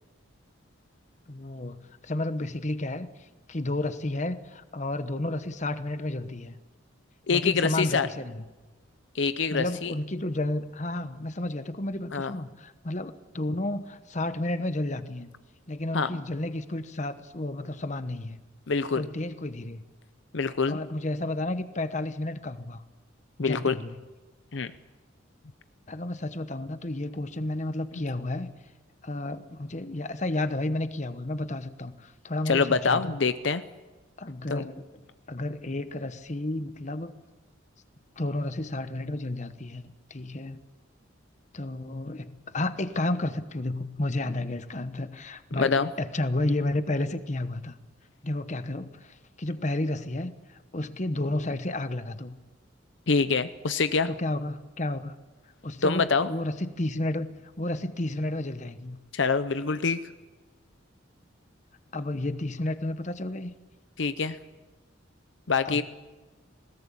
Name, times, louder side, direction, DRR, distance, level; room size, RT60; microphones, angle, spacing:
voice 1, 1.3-6.6 7.3-8.4 9.5-15.3 15.7-18.4 18.9-19.8 20.7-22.8 23.4-24.0 25.9-28.5 29.0-33.1 34.2-34.8 35.3-37.1 38.2-40.6 41.5-47.8 48.2-52.4 54.1-55.2 55.6-59.0 61.9-63.5 65.6-65.8, left 1 dB, 35° left, 11 dB, 1.0 m, -32 dB
voice 2, 7.3-8.1 9.1-9.9 12.1-12.3 15.9-16.1 18.7-19.0 20.3-20.8 23.4-23.8 24.5-24.7 32.5-33.6 34.5-34.7 45.6-45.9 53.1-54.1 55.8-56.3 59.1-60.0 64.0-64.4 65.5-65.8, left 4 dB, 65° left, 12 dB, 0.7 m, -25 dB
21.5 x 18.0 x 8.6 m, 1.2 s
head